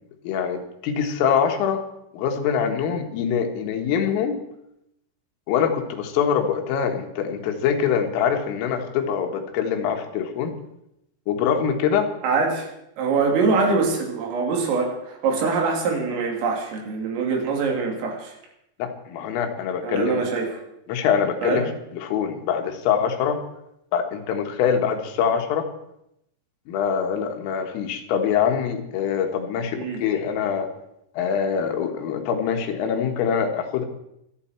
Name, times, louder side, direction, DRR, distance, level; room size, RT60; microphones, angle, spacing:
voice 1, 0.2-1.8 2.1-4.4 5.5-10.6 11.3-12.1 18.8-20.2 20.9-21.7 21.9-23.4 23.9-25.7 26.7-30.7 31.2-33.9, left 7 dB, 85° left, 5 dB, 4.1 m, -24 dB
voice 2, 12.2-12.7 13.0-18.4 19.8-20.6 21.4-21.7 29.8-30.0, right 4 dB, 85° right, 1 dB, 5.5 m, -24 dB
25.5 x 9.9 x 4.4 m, 0.81 s
omnidirectional pair, 5.7 m